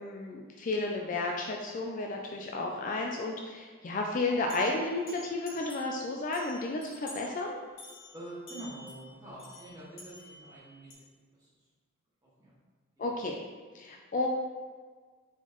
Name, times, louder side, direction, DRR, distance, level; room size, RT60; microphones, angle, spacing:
voice 1, 0.0-7.6 13.0-13.4 13.7-14.3, left 2 dB, 35° left, 1 dB, 0.3 m, -32 dB
sound 1, 4.5-6.0 6.3-7.3 7.8-10.9, left 2 dB, 60° left, 1.3 m, -50 dB
voice 2, 8.1-10.9 11.4-11.5 12.4-12.5 13.0-13.1, right 1 dB, 15° right, -9 dB, 1.5 m, -45 dB
4.2 x 3.9 x 3.0 m, 1.5 s
head